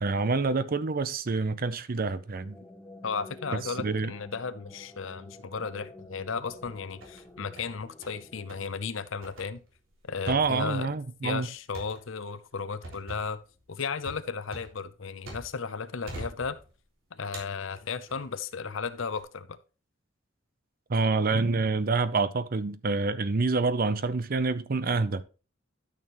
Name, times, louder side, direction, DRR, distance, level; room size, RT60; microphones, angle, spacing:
voice 1, 0.0-2.6 3.6-4.1 10.3-11.5 20.9-25.2, right 3 dB, 45° right, 0.6 m, -27 dB
sound 1, 2.1-9.5, left 2 dB, 10° left, 1.2 m, -50 dB
voice 2, 3.0-9.6 10.1-11.0 11.2-13.4 13.7-16.6 17.1-19.6, left 5 dB, 70° left, 0.7 m, -35 dB
sound 2, 6.3-7.2 7.6-8.2 8.5-8.7 9.2-15.7 16.1-16.9 17.3-18.3 18.8-19.2, right 1 dB, 80° right, 3.6 m, -45 dB
12.5 x 6.5 x 3.0 m
head